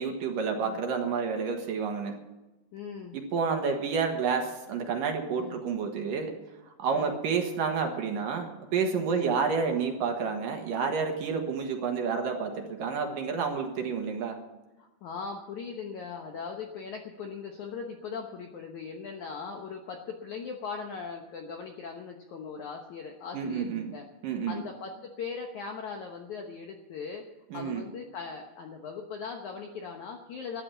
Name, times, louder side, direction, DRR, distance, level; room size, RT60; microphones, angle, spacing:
voice 1, 0.0-2.2 3.1-6.3 6.8-14.4 23.3-23.9 24.2-24.6 27.5-27.8, right 5 dB, 60° right, 3 dB, 2.9 m, -29 dB
voice 2, 2.7-3.2 5.4-5.6 6.9-7.2 9.1-9.4 11.3-11.4 14.8-24.0 24.5-27.2 27.5-30.6, left 5 dB, 70° left, 3 dB, 1.8 m, -39 dB
13.5 x 10.5 x 7.1 m, 1.0 s
omnidirectional pair, 4.8 m